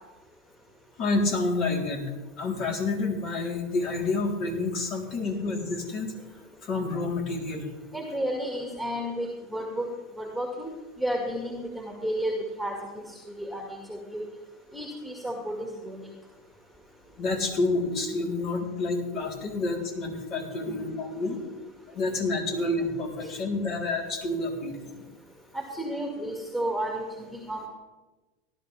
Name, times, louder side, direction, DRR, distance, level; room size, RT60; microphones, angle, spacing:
voice 1, 1.0-2.1 2.4-6.1 6.6-7.7 17.2-21.4 21.9-24.8, left 3 dB, 50° left, 0 dB, 3.7 m, -29 dB
voice 2, 7.9-9.9 10.2-10.7 11.0-13.0 13.4-14.3 14.7-16.1 20.7-20.8 23.2-23.3 25.5-27.7, right 1 dB, 5° left, 0 dB, 2.2 m, -32 dB
18.5 x 11.5 x 3.5 m, 1.2 s
hypercardioid pair, 100°, 0 cm